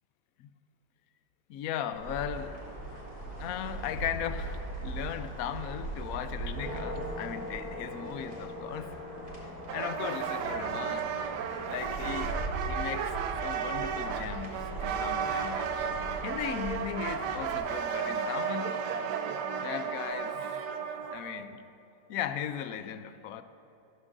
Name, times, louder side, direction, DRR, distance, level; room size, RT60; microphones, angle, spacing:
voice 1, 1.5-2.6 3.4-8.9 9.2-11.1 11.7-12.4 12.6-13.1 13.4-15.9 16.2-18.8 19.6-20.3 21.1-21.6 22.1-23.4, left 9 dB, 70° left, 11 dB, 0.9 m, -37 dB
sound 1, 1.9-17.6, right 1 dB, 30° right, 2.8 m, -39 dB
sound 2, 9.7-21.4, right 7 dB, 80° right, 1.2 m, -34 dB
14.0 x 13.5 x 2.6 m, 3.0 s
omnidirectional pair, 1.8 m